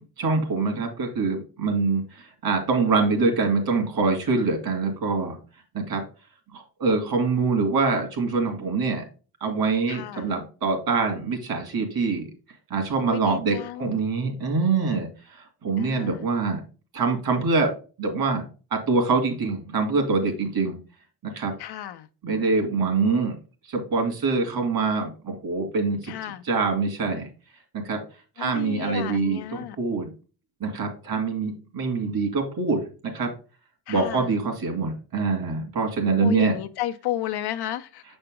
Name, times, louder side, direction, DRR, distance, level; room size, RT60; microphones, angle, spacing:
voice 1, 0.0-5.4 5.7-6.0 6.5-9.0 9.4-12.3 12.7-16.6 16.9-17.7 18.0-18.4 18.7-20.8 21.2-21.5 22.2-23.4 23.7-27.3 27.7-28.0 28.4-30.1 30.6-33.3 33.9-36.5, right 4 dB, 70° right, 2.4 m, -25 dB
voice 2, 9.9-10.3 13.1-14.0 15.8-16.2 21.6-22.1 26.1-26.4 28.4-29.8 33.9-34.3 36.2-38.0, left 12 dB, 80° left, 0.7 m, -33 dB
6.8 x 4.4 x 3.6 m
cardioid pair, 100°, 39 cm